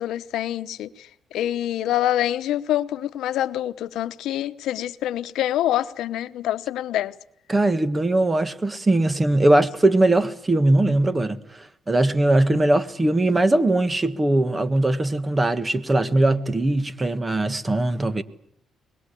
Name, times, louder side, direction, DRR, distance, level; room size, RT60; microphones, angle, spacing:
voice 1, 0.0-7.1, left 12 dB, 85° left, 0.9 m, -26 dB
voice 2, 7.5-18.2, right 2 dB, 20° right, 1.7 m, -20 dB
23.5 x 21.0 x 8.4 m
cardioid pair, 90°, 0 cm